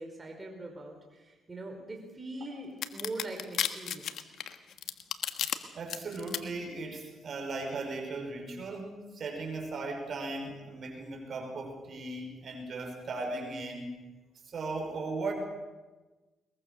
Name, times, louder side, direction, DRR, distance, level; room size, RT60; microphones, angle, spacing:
voice 1, 0.0-4.3, right 2 dB, 25° right, 2 dB, 4.7 m, -42 dB
sound 1, 2.8-5.6 5.9-6.4, left 10 dB, 70° left, 1.4 m, -32 dB
voice 2, 5.7-13.9 14.5-15.3, right 3 dB, 55° right, 3 dB, 5.5 m, -37 dB
22.0 x 22.0 x 6.7 m, 1.2 s
cardioid pair, 90°, 0 cm